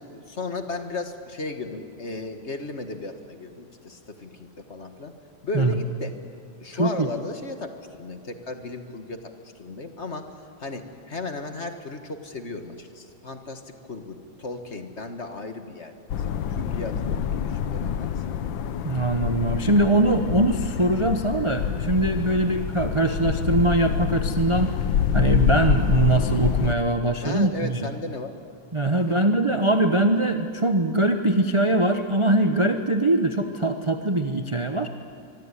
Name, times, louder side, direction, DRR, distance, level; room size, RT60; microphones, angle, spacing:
voice 1, 0.0-5.1 5.4-6.1 6.6-13.6 13.9-15.9 16.3-18.2 27.2-28.3 29.1-29.2, left 3 dB, 35° left, 7 dB, 1.8 m, -35 dB
sound 1, 16.1-26.7, left 8 dB, 70° left, 1.6 m, -26 dB
voice 2, 18.8-24.8 25.1-27.7 28.7-34.9, right 2 dB, 25° right, 6 dB, 0.6 m, -22 dB
24.5 x 24.0 x 9.9 m, 2.4 s
omnidirectional pair, 2.2 m